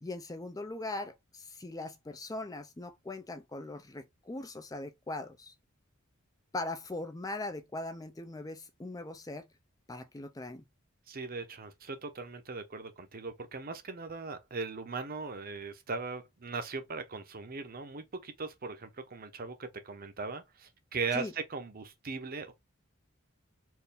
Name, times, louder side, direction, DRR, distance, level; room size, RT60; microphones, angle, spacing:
voice 1, 0.0-5.5 6.5-9.5 9.9-10.6 21.1-21.3, left 2 dB, 15° left, 0.5 m, -40 dB
voice 2, 11.1-22.5, right 4 dB, 45° right, 0.8 m, -39 dB
4.5 x 2.6 x 3.4 m
head